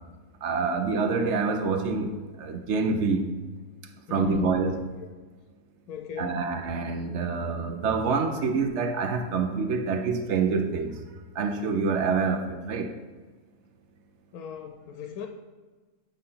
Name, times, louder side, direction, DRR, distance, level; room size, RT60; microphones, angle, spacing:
voice 1, 0.4-3.3 4.1-4.8 6.2-11.0 11.3-12.9, right 4 dB, 60° right, 6 dB, 0.9 m, -26 dB
voice 2, 4.1-4.6 5.0-5.1 5.9-6.4 14.3-15.3, left 6 dB, 80° left, 5 dB, 1.1 m, -38 dB
9.0 x 3.3 x 5.6 m, 1.3 s
omnidirectional pair, 1.6 m